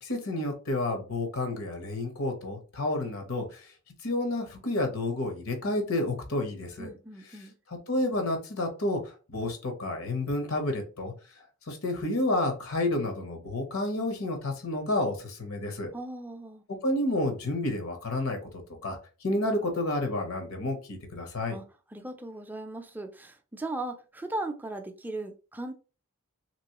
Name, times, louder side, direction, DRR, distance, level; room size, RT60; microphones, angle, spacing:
voice 1, 0.0-3.6 4.0-6.9 7.7-9.0 9.3-11.1 11.7-15.9 16.8-19.0 19.2-21.6, left 2 dB, 85° left, 1.0 m, -30 dB
voice 2, 6.8-7.5 15.9-16.6 21.5-21.6 21.9-25.7, right 2 dB, 10° right, 0.3 m, -37 dB
3.1 x 3.0 x 2.9 m
head